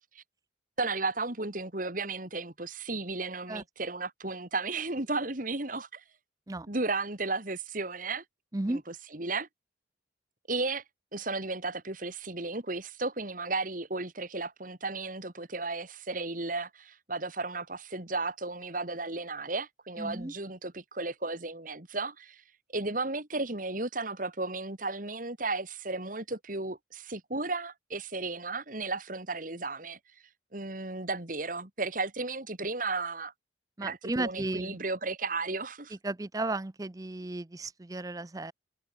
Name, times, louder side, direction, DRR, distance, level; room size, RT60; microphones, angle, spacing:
voice 1, 0.8-6.0 6.7-8.2 8.7-9.5 10.5-10.8 11.1-22.4 22.7-30.0 30.5-33.3 33.8-36.0, right 3 dB, 45° right, 2.6 m, -34 dB
voice 2, 20.0-20.3 33.8-34.8 36.0-38.5, right 2 dB, 20° right, 0.5 m, -34 dB
head